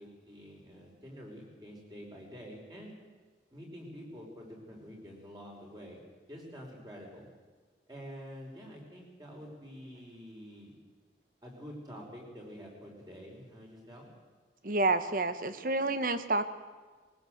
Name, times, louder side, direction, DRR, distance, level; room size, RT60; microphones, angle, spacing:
voice 1, 0.0-2.9 3.5-6.0 6.3-7.3 7.9-10.7 11.4-14.1, equal, 20° right, -1 dB, 5.4 m, -47 dB
voice 2, 14.6-16.4, right 2 dB, 50° right, 11 dB, 1.2 m, -29 dB
20.5 x 19.5 x 8.0 m, 1.4 s
head